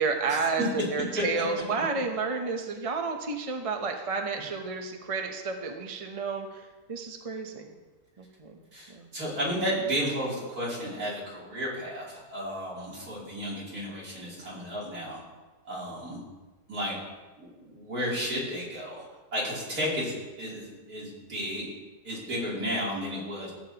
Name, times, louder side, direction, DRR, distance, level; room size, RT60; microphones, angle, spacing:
voice 1, 0.0-7.7 8.2-8.6 8.9-9.1, right 4 dB, 35° right, 3 dB, 0.6 m, -31 dB
voice 2, 8.7-15.2 15.7-16.2 16.7-17.0 17.4-19.0 19.3-20.1 20.4-21.7 22.0-23.5, equal, 60° right, -6 dB, 3.8 m, -33 dB
15.5 x 8.7 x 2.9 m, 1.2 s
omnidirectional pair, 1.8 m